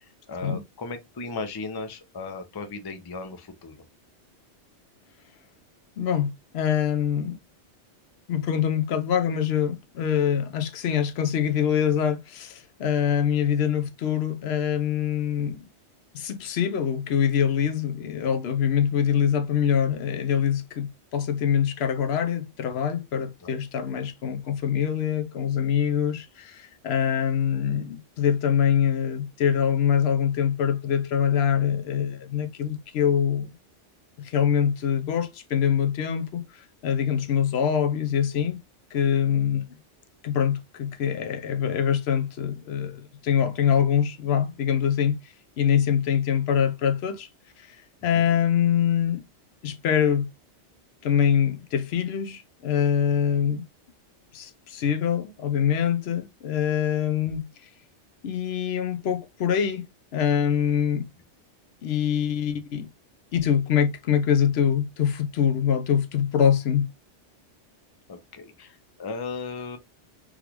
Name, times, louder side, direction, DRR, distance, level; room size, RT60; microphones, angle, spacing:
voice 1, 0.0-3.7 23.4-23.5 48.1-48.2 68.1-69.8, left 3 dB, 30° left, 0.4 m, -36 dB
voice 2, 6.0-7.4 8.3-15.6 16.1-33.5 34.2-36.4 36.8-38.6 38.9-39.7 40.2-45.2 45.6-47.3 48.0-49.2 49.6-50.3 51.0-53.6 54.3-57.5 58.2-61.1 61.8-62.9 63.3-66.9, left 8 dB, 65° left, 0.8 m, -24 dB
3.7 x 2.4 x 2.9 m
omnidirectional pair, 1.2 m